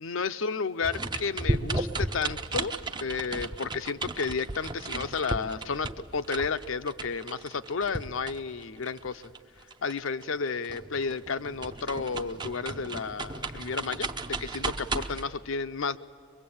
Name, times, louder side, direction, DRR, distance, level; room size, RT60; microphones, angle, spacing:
voice 1, 0.0-2.7 3.0-9.2 9.8-16.0, left 5 dB, 60° left, 13 dB, 0.6 m, -32 dB
sound 1, 0.8-10.4 10.6-15.2, right 2 dB, 20° right, 0.6 m, -34 dB
23.0 x 22.5 x 8.6 m, 2.3 s
head